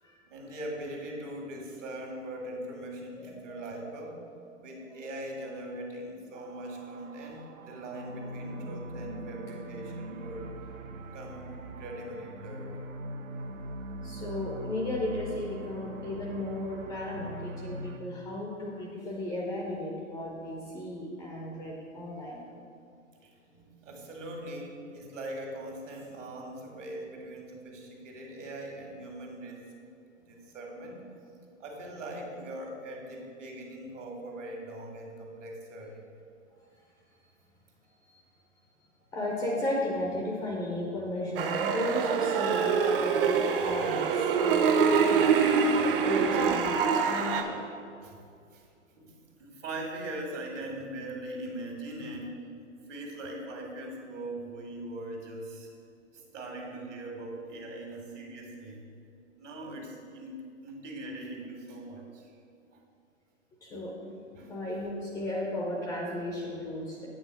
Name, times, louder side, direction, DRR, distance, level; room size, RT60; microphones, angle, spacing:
voice 1, 0.3-4.3 4.6-10.5 11.1-12.7 23.2-29.7 30.2-31.0 31.6-36.0 42.5-42.6 43.6-43.7 45.8-46.0 48.0-48.7 49.0-52.4 52.9-55.7 56.1-58.8 59.4-60.4 60.6-62.3 62.7-62.8 64.3-64.5, right 1 dB, 70° right, 1 dB, 1.8 m, -41 dB
voice 2, 3.4-3.9 14.0-22.4 38.1-38.2 39.1-45.3 45.9-47.6 63.6-64.1 64.5-67.1, left 1 dB, 10° left, -3 dB, 0.4 m, -34 dB
sound 1, 6.3-18.0, right 1 dB, 90° right, 0.7 m, -42 dB
sound 2, 41.4-47.4, right 6 dB, 45° right, 0.7 m, -25 dB
8.2 x 3.8 x 5.9 m, 2.3 s
hypercardioid pair, 125°, 38 cm